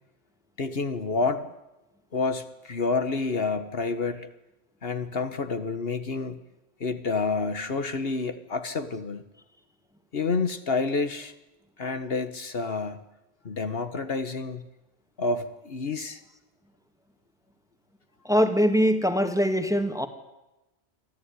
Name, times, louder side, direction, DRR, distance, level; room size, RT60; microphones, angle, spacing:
voice 1, 0.6-1.5 2.1-4.3 4.8-6.4 6.8-9.2 10.1-11.3 11.8-13.0 13.4-14.6 15.2-16.2, left 4 dB, 65° left, 10 dB, 1.6 m, -29 dB
voice 2, 18.3-20.1, equal, 5° right, 7 dB, 2.0 m, -22 dB
24.5 x 14.5 x 9.8 m, 0.98 s
omnidirectional pair, 1.1 m